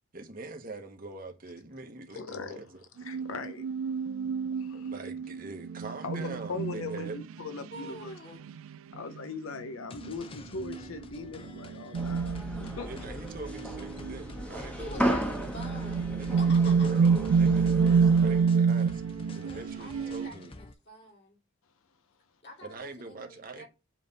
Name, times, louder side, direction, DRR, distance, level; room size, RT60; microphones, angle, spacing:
voice 1, 0.1-2.8 3.1-3.2 4.7-7.2 12.8-15.5 16.1-19.0 19.3-20.5 22.6-23.6, right 3 dB, 40° right, 1.1 m, -43 dB
voice 2, 2.1-2.6 3.0-3.7 4.5-4.9 6.0-8.1 8.9-13.1 13.6-13.7 14.9-15.1, left 4 dB, 75° left, 0.6 m, -40 dB
sound 1, 3.0-7.3 8.5-8.7 9.6-10.1 10.6-11.0 11.4-13.0 13.3-14.2 15.0-15.1 15.4-20.3, right 5 dB, 75° right, 0.3 m, -27 dB
voice 3, 7.7-8.4 14.8-16.9 19.3-21.4 22.4-23.7, left 1 dB, 50° left, 2.3 m, -47 dB
sound 2, 9.9-20.7, left 2 dB, 25° left, 0.5 m, -49 dB
sound 3, 11.9-18.4, equal, 5° left, 1.1 m, -35 dB
7.7 x 3.3 x 5.3 m
head